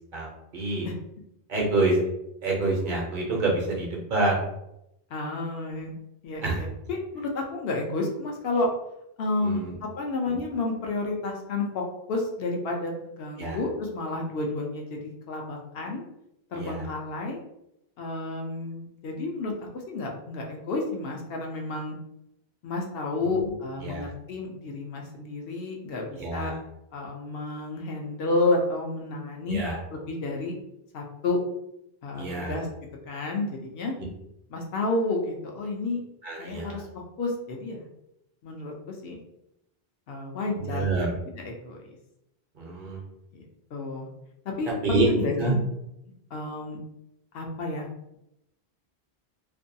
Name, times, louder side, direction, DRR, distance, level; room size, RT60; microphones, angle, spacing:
voice 1, 0.1-0.9 1.5-2.0 2.4-4.4 6.4-6.6 9.4-9.8 10.3-10.4 13.4-13.6 16.5-16.9 23.2-23.5 23.8-24.1 26.2-26.6 29.5-29.8 32.2-32.6 36.2-36.8 40.6-41.2 42.6-43.0 44.8-45.1 45.4-45.5, right 2 dB, 55° right, -1 dB, 0.7 m, -27 dB
voice 2, 5.1-6.0 6.2-8.7 9.2-11.8 12.1-16.0 16.5-17.4 18.0-19.5 19.9-22.0 22.6-26.5 26.9-29.6 29.9-30.5 30.9-31.4 32.0-32.7 33.1-33.9 34.5-36.0 36.4-36.9 37.2-37.9 38.4-38.7 39.0-39.2 40.1-40.9 41.4-41.8 43.3-43.4 43.7-44.1 44.6-45.6 46.3-46.8 47.3-47.9, left 2 dB, 70° left, 0 dB, 0.7 m, -30 dB
2.5 x 2.2 x 2.6 m, 0.84 s
omnidirectional pair, 1.1 m